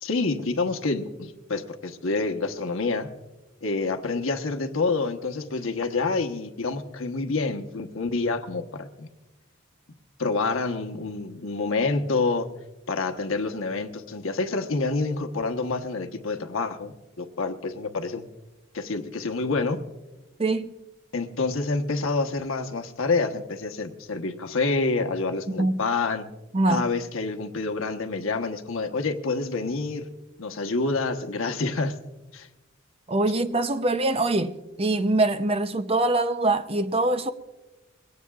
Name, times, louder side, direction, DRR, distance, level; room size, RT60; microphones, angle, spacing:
voice 1, 0.0-3.1 3.6-9.1 10.2-12.5 12.9-18.2 18.7-19.8 21.1-26.3 26.7-30.1 30.4-31.9 32.3-32.5, left 3 dB, 80° left, 1.1 m, -27 dB
voice 2, 20.4-20.7 25.6-25.8 26.5-26.9 33.1-37.3, right 2 dB, 30° right, 0.6 m, -23 dB
21.5 x 17.5 x 2.4 m
head